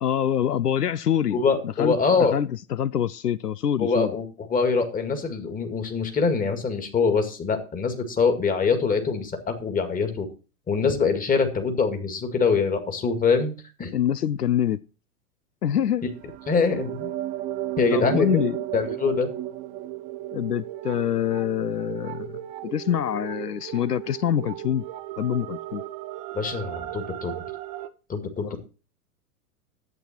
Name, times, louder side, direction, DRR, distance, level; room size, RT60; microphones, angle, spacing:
voice 1, 0.0-2.0 2.3-4.2 13.9-14.8 15.6-16.0 17.9-18.6 20.3-24.8 25.2-25.8 28.4-28.6, left 10 dB, 85° left, 0.6 m, -25 dB
voice 2, 1.3-2.4 3.8-4.2 4.5-10.3 10.7-13.5 13.8-13.9 16.5-17.1 17.8-18.3 18.7-19.3 26.3-27.3 28.1-28.6, left 5 dB, 20° left, 2.1 m, -24 dB
sound 1, 16.0-27.9, right 14 dB, 15° right, 0.4 m, -34 dB
11.0 x 8.3 x 4.4 m
figure-of-eight pair, 95°, 46 cm